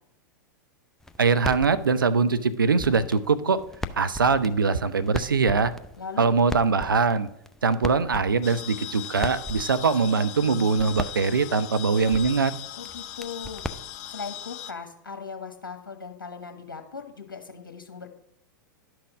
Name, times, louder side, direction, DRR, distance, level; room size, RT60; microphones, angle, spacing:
sound 1, 1.0-14.4, left 1 dB, 5° left, 0.5 m, -39 dB
voice 1, 1.2-3.6 3.9-5.7 6.2-7.3 7.6-12.5, right 4 dB, 80° right, 13 dB, 0.6 m, -22 dB
voice 2, 6.0-6.3 12.8-13.6 14.1-18.1, left 5 dB, 75° left, 5 dB, 1.1 m, -38 dB
sound 2, 8.4-14.7, left 11 dB, 50° left, 0.6 m, -39 dB
11.5 x 6.1 x 4.8 m, 0.78 s
figure-of-eight pair, 100°, 11 cm